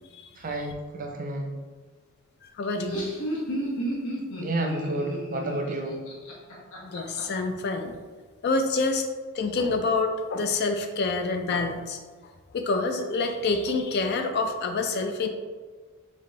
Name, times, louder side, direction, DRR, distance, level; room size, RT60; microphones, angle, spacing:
voice 1, 0.4-1.5 4.4-6.0, right 2 dB, 35° right, 3 dB, 0.5 m, -31 dB
Laughter, 2.6-7.2, right 1 dB, 80° left, 1.1 m, -32 dB
voice 2, 2.6-3.1 6.8-8.0 8.4-9.1 9.3-12.0 12.5-15.3, left 3 dB, 45° left, 6 dB, 0.4 m, -27 dB
4.2 x 3.5 x 3.2 m, 1.4 s
head